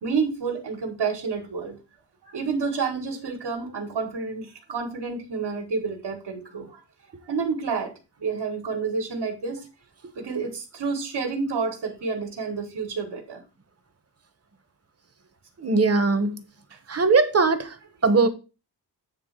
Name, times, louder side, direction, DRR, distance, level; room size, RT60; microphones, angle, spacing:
voice 1, 0.0-1.8 2.2-6.8 7.2-7.9 8.2-9.6 10.2-13.4 16.7-16.8, right 5 dB, 80° right, 1.9 m, -29 dB
voice 2, 15.6-16.4 16.9-17.7 18.0-18.3, right 4 dB, 40° right, 1.1 m, -20 dB
9.3 x 3.3 x 6.6 m
wide cardioid pair, 110°, 40 cm